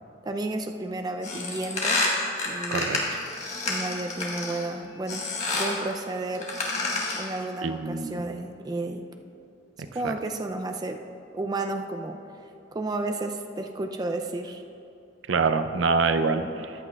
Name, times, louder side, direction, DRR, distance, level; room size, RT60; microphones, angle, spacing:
voice 1, 0.2-2.0 2.4-3.0 3.7-5.3 5.5-6.5 7.2-9.1 9.9-11.0 11.3-12.2 12.7-14.6 16.6-16.7, right 2 dB, 20° right, 5 dB, 0.3 m, -32 dB
sound 1, 1.2-4.7 5.1-5.8 6.3-7.3, left 2 dB, 40° left, 1.5 m, -29 dB
voice 2, 2.7-3.3 7.6-8.2 10.0-10.1 15.3-16.8, right 4 dB, 80° right, 9 dB, 0.5 m, -26 dB
14.0 x 9.7 x 2.3 m, 2.8 s
head